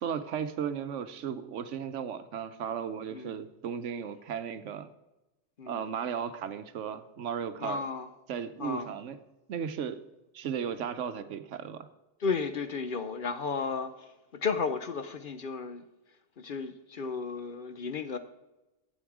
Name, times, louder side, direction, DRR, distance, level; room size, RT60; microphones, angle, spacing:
voice 1, 0.0-4.9 5.7-7.8 8.3-9.2 9.5-10.0 10.3-11.9, right 7 dB, 80° right, 1.1 m, -35 dB
voice 2, 7.6-8.1 8.6-8.9 12.2-15.8 16.4-18.2, left 5 dB, 50° left, 0.8 m, -33 dB
12.5 x 8.6 x 4.8 m
omnidirectional pair, 1.2 m